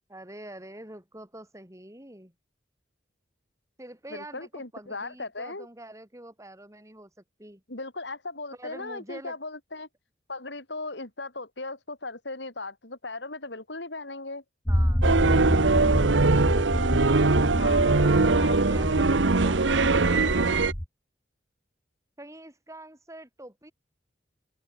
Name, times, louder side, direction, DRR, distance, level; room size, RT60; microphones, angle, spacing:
voice 1, 0.1-2.3 3.8-7.1 7.4-7.6 8.5-9.4 14.7-17.1 17.8-20.0 22.2-23.7, right 1 dB, 15° right, 6.0 m, -45 dB
voice 2, 4.1-5.7 7.7-9.9 10.3-14.4 17.6-18.6, left 3 dB, 70° left, 4.6 m, -38 dB
sound 1, 14.7-20.8, equal, 15° left, 1.9 m, -27 dB
sound 2, 15.0-20.7, right 3 dB, 90° right, 1.0 m, -22 dB
open air
head